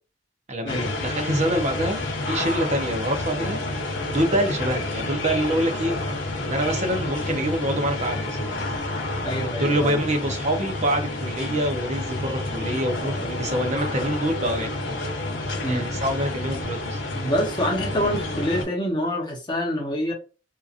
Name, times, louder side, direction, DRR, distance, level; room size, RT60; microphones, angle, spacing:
voice 1, 0.5-3.6 4.1-6.0 6.3-8.4 9.6-14.9 15.6-17.0, right 1 dB, 40° right, 0.7 m, -26 dB
sound 1, 0.7-18.6, left 2 dB, 85° left, 0.9 m, -29 dB
voice 2, 9.2-10.0 15.6-15.9 17.1-20.1, equal, 25° left, 0.9 m, -26 dB
2.8 x 2.5 x 2.4 m
head